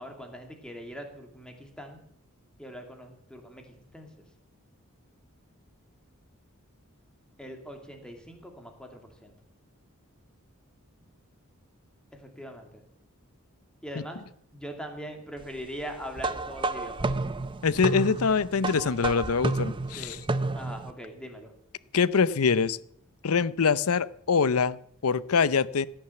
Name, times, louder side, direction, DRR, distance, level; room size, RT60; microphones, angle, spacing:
voice 1, 0.0-2.0 2.6-4.1 7.4-9.3 12.2-12.7 13.8-14.2 14.5-17.1 19.9-20.2 20.5-21.5, equal, 5° left, 3 dB, 2.5 m, -41 dB
sound 1, 16.2-20.9, right 2 dB, 25° right, 0.6 m, -31 dB
voice 2, 17.6-20.2 21.9-22.8 23.2-25.9, left 5 dB, 85° left, 19 dB, 0.6 m, -24 dB
16.5 x 10.0 x 7.8 m, 0.67 s
head